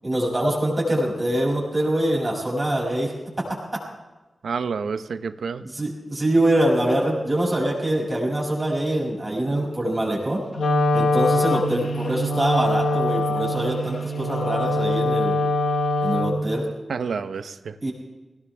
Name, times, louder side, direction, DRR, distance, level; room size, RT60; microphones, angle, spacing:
voice 1, 0.0-3.8 5.6-10.4 10.9-15.4 16.0-16.6 17.8-17.9, right 1 dB, 25° right, -2 dB, 6.5 m, -24 dB
voice 2, 4.4-5.6 16.9-17.7, right 5 dB, 90° right, 11 dB, 0.9 m, -29 dB
Wind instrument woodwind instrument, 10.5-16.6, left 1 dB, 85° left, 1.2 m, -23 dB
21.5 x 19.0 x 3.4 m, 1.2 s
wide cardioid pair, 85°, 0 cm